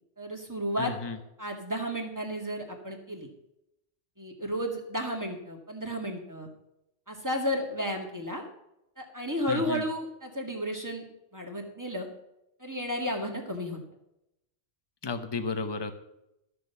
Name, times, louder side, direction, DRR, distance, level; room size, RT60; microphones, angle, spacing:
voice 1, 0.2-3.3 4.2-6.5 7.1-8.4 9.0-11.0 11.3-12.1 12.6-13.8, equal, 15° right, 2 dB, 2.1 m, -33 dB
voice 2, 0.8-1.2 9.5-9.8 15.0-15.9, left 3 dB, 25° left, 8 dB, 0.9 m, -33 dB
12.5 x 6.7 x 6.9 m, 0.86 s
omnidirectional pair, 1.2 m